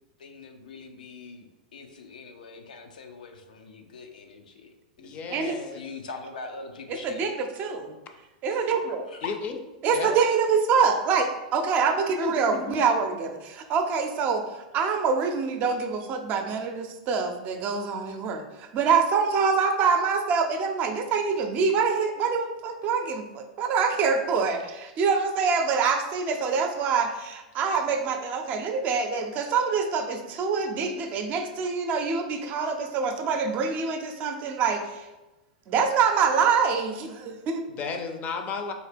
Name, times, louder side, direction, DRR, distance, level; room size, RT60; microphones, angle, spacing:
voice 1, 0.2-7.3 9.1-9.4, left 4 dB, 85° left, 5 dB, 0.5 m, -43 dB
voice 2, 5.0-5.8 9.2-9.6 9.9-10.2 12.2-12.3 12.7-12.8 37.7-38.7, left 5 dB, 35° left, 5 dB, 0.5 m, -33 dB
voice 3, 6.9-8.0 8.4-9.0 9.8-35.1 35.7-37.6, right 5 dB, 40° right, 6 dB, 0.5 m, -25 dB
4.1 x 2.8 x 3.4 m, 1.1 s
hypercardioid pair, 110°, 4 cm